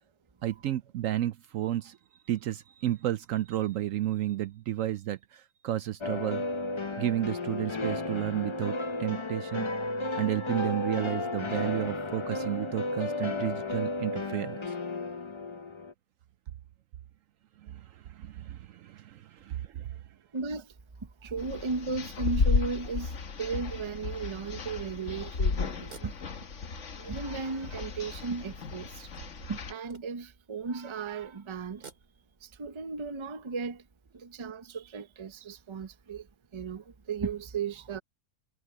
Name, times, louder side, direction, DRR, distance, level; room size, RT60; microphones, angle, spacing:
voice 1, 0.4-2.0 2.3-6.4 7.0-9.7 10.1-14.6 17.6-20.0, right 13 dB, 70° right, 0.9 m, -32 dB
sound 1, 6.0-15.9, left 2 dB, 30° left, 0.5 m, -33 dB
voice 2, 20.3-20.7 21.0-26.1 27.0-29.1 29.5-31.9 32.4-33.8 34.1-36.3 36.5-38.0, right 5 dB, 25° right, 0.6 m, -36 dB
sound 2, 21.4-29.7, left 5 dB, 55° left, 1.6 m, -33 dB
sound 3, 25.7-27.1 27.7-27.8 28.9-30.5 31.6-32.5, right 5 dB, 90° right, 3.1 m, -53 dB
omnidirectional pair, 1.6 m